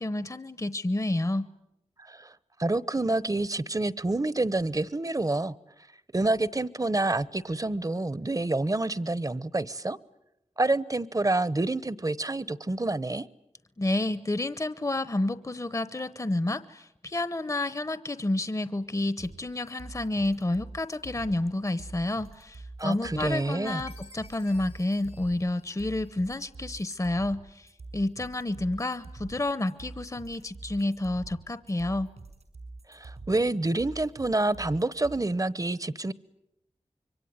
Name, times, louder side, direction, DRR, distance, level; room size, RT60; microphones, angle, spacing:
voice 1, 0.0-1.5 13.8-32.1, left 2 dB, 30° left, 1.0 m, -30 dB
voice 2, 2.0-5.5 6.1-10.0 10.6-13.3 22.8-23.8 32.9-36.1, right 2 dB, 30° right, 1.0 m, -28 dB
sound 1, 19.2-35.2, right 3 dB, 85° right, 5.8 m, -45 dB
Chime, 23.9-26.4, left 2 dB, 85° left, 3.9 m, -55 dB
26.5 x 23.5 x 9.5 m
wide cardioid pair, 50°, 11 cm